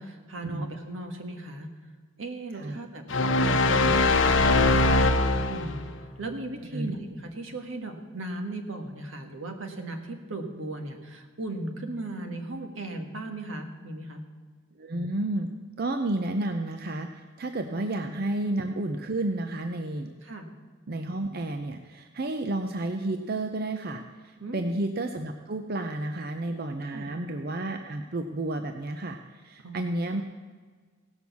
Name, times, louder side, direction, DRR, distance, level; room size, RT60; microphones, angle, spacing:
voice 1, 0.0-1.7 2.2-3.0 3.4-5.9 6.2-14.2 20.2-20.5 24.4-24.8 26.9-27.1 29.6-29.8, right 2 dB, 80° right, 4 dB, 1.6 m, -37 dB
sound 1, 3.1-5.9, left 2 dB, 70° left, 0.8 m, -22 dB
voice 2, 14.8-15.5 15.8-20.1 20.9-30.2, right 2 dB, 50° right, 6 dB, 0.6 m, -31 dB
16.5 x 6.2 x 7.1 m, 1.5 s
head